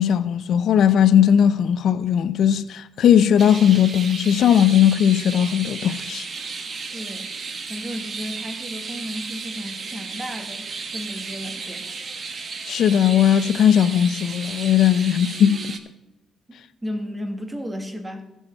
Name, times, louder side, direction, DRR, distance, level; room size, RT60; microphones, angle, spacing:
voice 1, 0.0-6.2 12.7-15.8, left 9 dB, 70° left, 0.5 m, -18 dB
sound 1, 3.4-15.8, right 4 dB, 45° right, 1.0 m, -34 dB
voice 2, 6.9-7.3 7.7-10.6 10.9-11.9 16.5-18.3, equal, 15° right, 1.6 m, -33 dB
16.0 x 6.3 x 4.4 m
cardioid pair, 90°, 0 cm